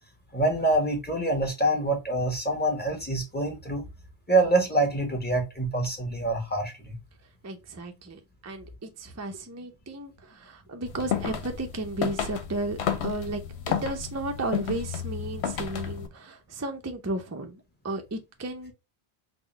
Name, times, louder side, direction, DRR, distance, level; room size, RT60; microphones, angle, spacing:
voice 1, 0.3-3.8 4.3-6.9, right 2 dB, 10° left, 1.1 m, -25 dB
voice 2, 7.4-13.4 13.7-18.7, right 2 dB, 25° right, 0.4 m, -34 dB
sound 1, 10.9-16.1, left 8 dB, 70° left, 0.9 m, -32 dB
3.8 x 2.2 x 3.8 m
omnidirectional pair, 1.2 m